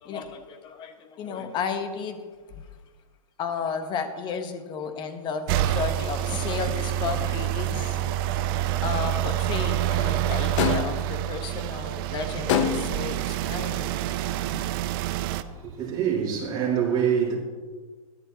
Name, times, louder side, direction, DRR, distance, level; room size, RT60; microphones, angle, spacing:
voice 1, 0.0-2.2 2.5-2.7 3.4-8.1 8.4-14.0 14.5-14.6, left 6 dB, 25° left, 0.9 m, -33 dB
sound 1, 5.5-15.4, right 13 dB, 40° right, 0.5 m, -27 dB
sound 2, 10.6-11.1 12.5-13.1, left 9 dB, 55° left, 0.7 m, -25 dB
voice 2, 15.4-17.4, right 8 dB, 25° right, 3.4 m, -25 dB
13.5 x 11.0 x 2.8 m
hypercardioid pair, 140°, 19 cm